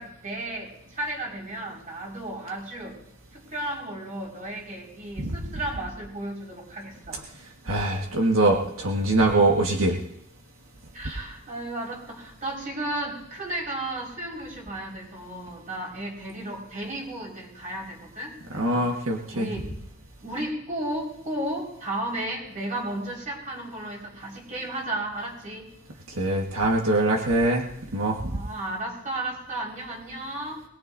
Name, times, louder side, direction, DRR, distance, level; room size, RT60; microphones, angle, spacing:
voice 1, 0.0-3.0 3.3-7.2 10.9-18.9 19.3-19.7 20.2-25.7 28.3-30.6, right 1 dB, 40° right, -2 dB, 5.1 m, -34 dB
voice 2, 7.7-10.0 18.5-19.5 26.1-27.7 27.9-28.4, right 2 dB, 85° right, 0 dB, 1.6 m, -23 dB
22.0 x 21.0 x 2.7 m, 0.75 s
head